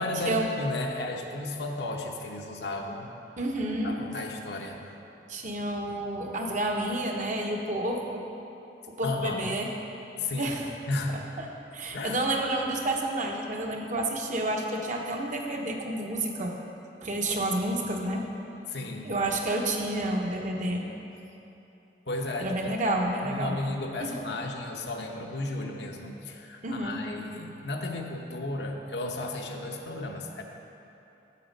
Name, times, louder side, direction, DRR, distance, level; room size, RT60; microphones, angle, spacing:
voice 1, 0.0-3.1 3.8-4.8 9.0-9.6 10.2-10.5 10.9-11.2 11.9-12.2 18.7-19.1 22.1-22.7 23.3-30.4, left 2 dB, 70° left, 1 dB, 0.9 m, -33 dB
voice 2, 3.4-4.0 5.3-8.2 9.0-9.7 10.4-10.7 11.4-11.5 11.7-16.5 17.0-18.2 19.0-20.8 22.4-23.6 24.0-24.1 26.6-27.0, right 1 dB, 45° right, 1 dB, 0.9 m, -29 dB
8.4 x 7.3 x 5.3 m, 2.9 s
head